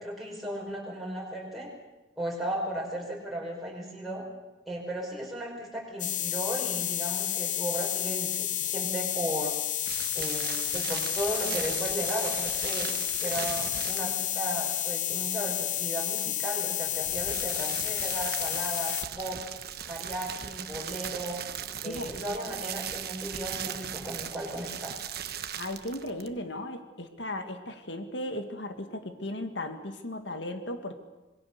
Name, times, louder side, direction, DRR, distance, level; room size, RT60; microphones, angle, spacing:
voice 1, 0.0-1.7 2.2-4.2 4.7-9.6 10.1-12.9 13.2-19.4 19.9-21.4 21.8-25.0, right 1 dB, ahead, -3 dB, 5.1 m, -35 dB
sound 1, 6.0-19.0, left 12 dB, 40° left, 0.9 m, -31 dB
sound 2, 9.9-14.4 16.8-26.4, right 9 dB, 50° right, 1.2 m, -38 dB
voice 2, 25.6-30.9, left 1 dB, 70° left, 6 dB, 2.0 m, -36 dB
26.5 x 21.5 x 6.7 m, 1.1 s
head